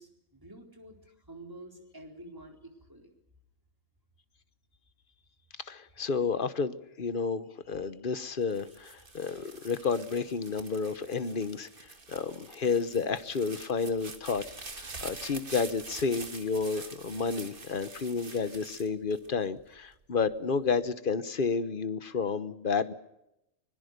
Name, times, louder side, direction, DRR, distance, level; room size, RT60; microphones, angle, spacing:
voice 1, 0.0-3.1, right 1 dB, 15° right, 2 dB, 4.2 m, -49 dB
voice 2, 5.6-14.5 14.7-22.9, left 5 dB, 45° left, 13 dB, 1.2 m, -31 dB
sound 1, 8.4-19.8 20.3-20.9, right 3 dB, 45° right, 1.9 m, -46 dB
25.0 x 21.5 x 6.7 m, 0.86 s
omnidirectional pair, 1.3 m